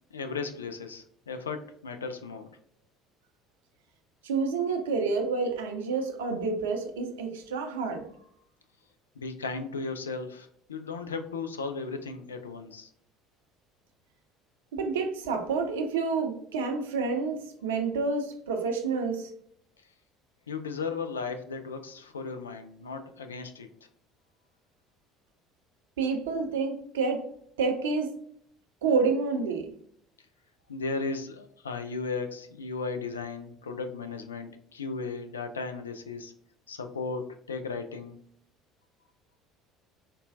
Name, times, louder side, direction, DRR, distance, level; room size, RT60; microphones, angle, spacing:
voice 1, 0.1-2.5 9.2-12.9 20.5-23.7 30.7-36.3 36.7-38.1, left 4 dB, 80° left, 7 dB, 0.3 m, -36 dB
voice 2, 4.2-8.1 14.7-19.3 26.0-27.3 27.6-28.2 28.8-29.7, right 4 dB, 70° right, 4 dB, 0.5 m, -29 dB
4.1 x 2.2 x 2.5 m, 0.63 s
figure-of-eight pair, 60°, 0 cm